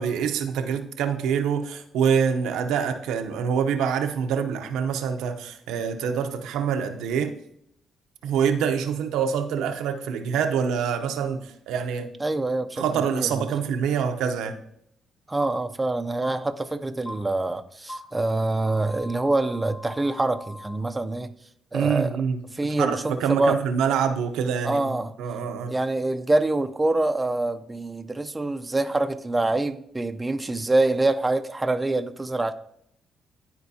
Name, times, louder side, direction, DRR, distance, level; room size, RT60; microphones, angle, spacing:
voice 1, 0.0-7.3 8.2-12.1 12.8-14.6 21.7-22.4 22.8-25.7, right 7 dB, 90° right, 0.7 m, -25 dB
voice 2, 12.2-12.8 13.1-13.5 15.3-21.3 21.7-22.2 22.5-23.6 24.6-25.1 25.7-32.5, right 2 dB, 15° right, 0.5 m, -25 dB
sound 1, 15.4-15.5 16.2-16.3 17.0-17.1 17.9-18.0 18.6-20.8, left 1 dB, 65° left, 3.1 m, -40 dB
12.0 x 4.5 x 2.7 m
cardioid pair, 90°, 0 cm